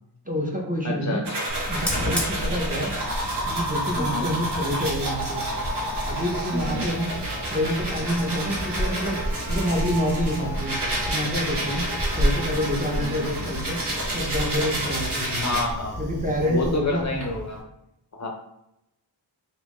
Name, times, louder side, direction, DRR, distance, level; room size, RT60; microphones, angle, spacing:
voice 1, 0.2-1.2 1.7-2.9 3.4-5.4 6.0-7.1 7.5-9.2 9.4-10.8 11.1-11.9 12.1-13.8 14.1-15.6 16.0-17.3, equal, 20° right, -1 dB, 0.6 m, -27 dB
voice 2, 0.8-1.2 4.0-4.3 6.5-6.8 13.0-13.3 15.4-16.0 16.5-17.6 18.1-18.3, left 2 dB, 40° left, 0 dB, 0.5 m, -28 dB
sound 1, 1.2-15.6, right 1 dB, 60° right, 1.2 m, -30 dB
Fire, 1.5-17.6, equal, 5° left, 1.0 m, -32 dB
sound 2, 6.4-13.3, right 2 dB, 85° right, 0.8 m, -40 dB
3.2 x 2.5 x 3.4 m, 0.82 s
wide cardioid pair, 115°, 45 cm